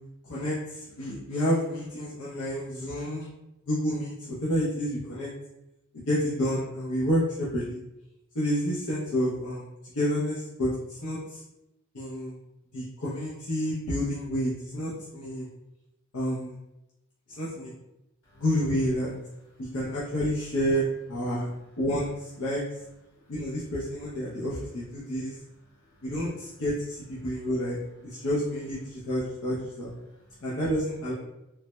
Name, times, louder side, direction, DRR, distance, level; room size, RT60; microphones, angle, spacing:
voice 1, 0.2-3.3 3.7-5.3 6.1-7.8 8.3-11.4 11.9-12.4 12.7-15.5 16.1-16.6 17.4-17.7 18.4-19.1 19.6-21.5 21.8-22.6 23.3-25.3 26.0-29.9 30.4-31.1, equal, 85° left, -7 dB, 0.6 m, -29 dB
voice 2, 19.4-19.8 23.1-23.3 24.3-24.5 25.0-26.1 27.2-27.3 28.0-28.3 30.0-30.5, equal, 55° left, -7 dB, 1.5 m, -63 dB
3.2 x 2.1 x 3.0 m, 0.90 s
head